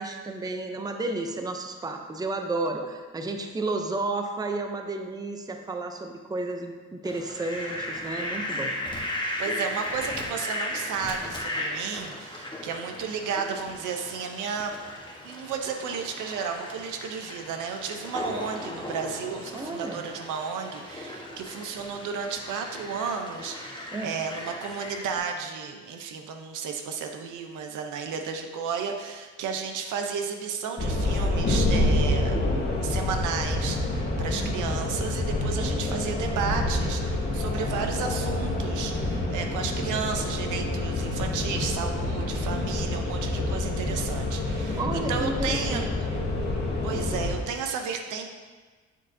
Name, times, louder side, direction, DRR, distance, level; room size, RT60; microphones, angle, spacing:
voice 1, 0.0-8.7 19.5-20.0 23.9-24.2 35.6-36.0 44.8-46.2, right 2 dB, 15° right, 4 dB, 0.5 m, -32 dB
Fowl, 7.0-25.2, left 1 dB, 15° left, 1.1 m, -36 dB
voice 2, 9.4-14.8 15.2-32.4 32.8-45.8 46.8-48.3, right 6 dB, 80° right, 4 dB, 0.7 m, -33 dB
sound 1, 30.8-47.3, left 2 dB, 35° left, 1.4 m, -27 dB
6.5 x 6.3 x 2.7 m, 1.4 s
cardioid pair, 90°, 30 cm